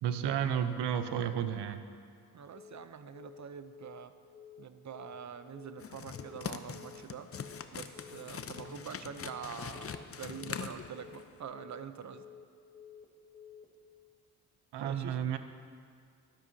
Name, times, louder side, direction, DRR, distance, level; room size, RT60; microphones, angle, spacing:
voice 1, 0.0-1.8 14.7-15.4, right 9 dB, 90° right, 10 dB, 0.7 m, -32 dB
voice 2, 2.3-4.1 4.6-7.3 7.7-12.2 14.8-15.2, right 7 dB, 45° right, 11 dB, 0.7 m, -45 dB
Telephone, 2.5-2.9 3.1-3.5 3.7-4.1 4.3-4.7 4.9-5.3 5.5-5.9 6.1-6.5 6.7-7.1 7.3-7.7 7.9-8.3 8.5-8.9 9.1-9.5 9.7-10.1 10.3-10.7 10.9-11.3 11.5-11.9 12.1-12.5 12.7-13.1 13.3-13.7, left 8 dB, 20° left, 1.8 m, -52 dB
sound 1, 5.8-11.4, left 6 dB, 35° left, 0.6 m, -43 dB
12.5 x 12.0 x 2.8 m, 2.2 s
cardioid pair, 55°, 40 cm